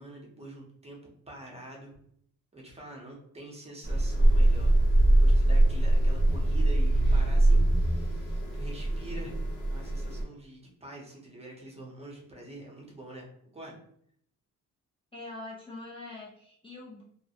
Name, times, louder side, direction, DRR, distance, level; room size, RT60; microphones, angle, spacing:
voice 1, 0.0-1.9 2.5-4.8 5.2-13.8, right 1 dB, 20° right, -2 dB, 0.6 m, -46 dB
sound 1, 3.8-10.2, right 1 dB, 80° left, 0.8 m, -23 dB
voice 2, 15.1-17.0, left 2 dB, 20° left, -6 dB, 0.4 m, -43 dB
2.4 x 2.1 x 2.7 m, 0.67 s
cardioid pair, 135°, 31 cm